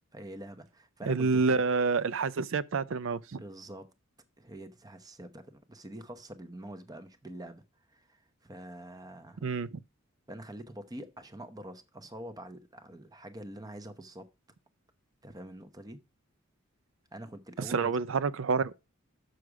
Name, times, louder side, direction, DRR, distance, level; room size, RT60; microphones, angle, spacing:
voice 1, 0.1-1.7 3.4-3.9 4.4-7.6 7.9-9.5 10.3-14.3 15.2-16.0 17.1-17.9, right 1 dB, 20° right, 0.8 m, -45 dB
voice 2, 1.1-3.4 9.4-9.7 17.7-18.7, right 4 dB, 65° right, 0.5 m, -28 dB
6.5 x 6.3 x 4.8 m
head